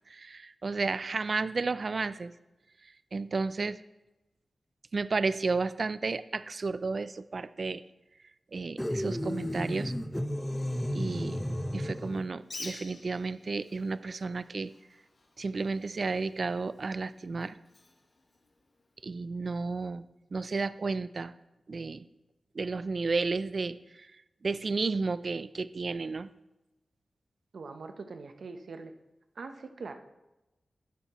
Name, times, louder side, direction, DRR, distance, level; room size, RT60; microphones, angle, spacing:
voice 1, 0.1-2.3 3.1-3.8 4.9-7.8 8.5-9.9 10.9-11.4 11.7-14.7 15.4-17.6 19.0-20.1 20.3-21.3 21.7-22.0 22.6-23.8 24.4-26.3, right 4 dB, 50° right, 15 dB, 0.4 m, -32 dB
sound 1, 8.8-12.3, equal, 5° left, 0.6 m, -33 dB
Bird, 12.4-19.0, left 2 dB, 50° left, 1.6 m, -50 dB
voice 2, 27.5-28.9 29.3-29.9, right 4 dB, 75° right, 7 dB, 0.9 m, -42 dB
11.0 x 10.5 x 3.1 m, 0.99 s
wide cardioid pair, 100°, 0 cm